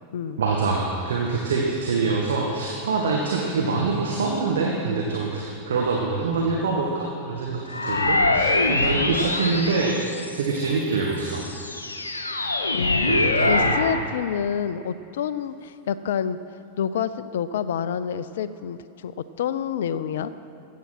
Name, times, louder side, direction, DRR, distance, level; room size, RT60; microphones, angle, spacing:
voice 1, 0.4-11.4 13.1-13.7, right 4 dB, 65° right, -1 dB, 1.4 m, -25 dB
sound 1, 7.7-10.6 11.2-14.0, left 2 dB, 80° left, 0.9 m, -23 dB
voice 2, 9.5-10.0 12.7-16.4 16.8-20.3, left 8 dB, 60° left, 14 dB, 0.4 m, -28 dB
14.5 x 8.3 x 6.1 m, 2.7 s
figure-of-eight pair, 90°, 0 cm